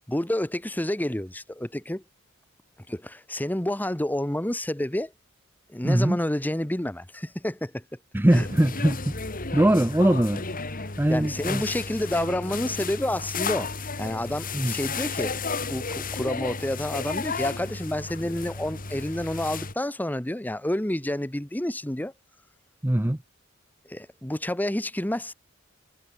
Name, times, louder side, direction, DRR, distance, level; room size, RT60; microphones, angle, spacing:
voice 1, 0.1-2.0 2.9-5.1 5.7-7.8 8.3-8.5 11.1-13.7 14.0-22.1 23.8-25.3, left 1 dB, 10° left, 1.0 m, -29 dB
voice 2, 5.8-6.2 8.1-9.2 9.5-11.6 14.5-14.7 22.8-23.2, right 1 dB, 10° right, 0.6 m, -22 dB
sound 1, 8.3-19.7, left 4 dB, 40° left, 2.8 m, -33 dB
head